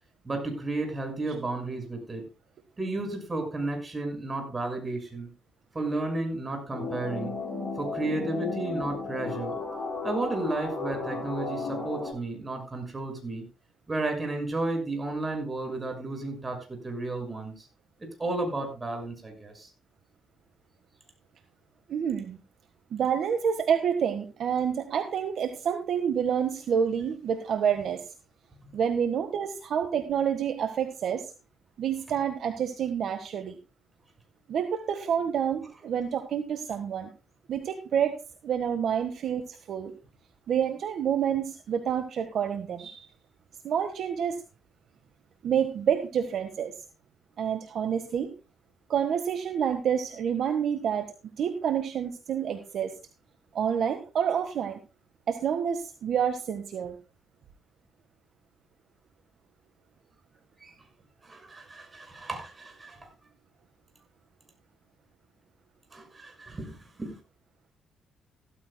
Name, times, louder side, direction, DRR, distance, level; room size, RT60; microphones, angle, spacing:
voice 1, 0.2-2.2 2.8-5.3 5.7-7.3 7.8-9.6 10.0-13.4 13.9-17.7 18.0-19.7 28.6-28.7 60.6-60.8 61.2-63.1 65.9-67.1, right 2 dB, 25° right, 4 dB, 6.1 m, -33 dB
sound 1, 6.7-12.1, left 3 dB, 20° left, 8.0 m, -34 dB
voice 2, 21.9-22.4 22.9-28.0 28.7-31.3 31.8-33.6 34.5-37.1 37.5-38.2 38.4-39.9 40.5-43.1 43.6-44.4 45.4-46.7 47.4-48.3 48.9-51.1 51.4-52.9 53.5-54.8 55.3-56.9, right 8 dB, 65° right, 7 dB, 1.4 m, -28 dB
15.5 x 14.0 x 2.3 m, 0.30 s
cardioid pair, 90°, 0 cm